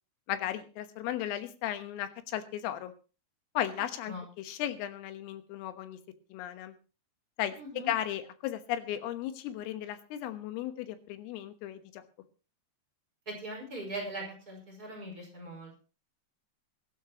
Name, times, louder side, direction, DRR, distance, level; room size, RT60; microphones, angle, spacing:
voice 1, 0.3-2.9 3.6-6.0 6.3-6.7 7.4-7.6 7.9-12.0, left 12 dB, 80° left, 9 dB, 3.8 m, -35 dB
voice 2, 7.6-7.9 13.3-15.8, right 1 dB, 20° right, -1 dB, 5.3 m, -40 dB
22.5 x 12.0 x 3.0 m, 0.35 s
omnidirectional pair, 6.0 m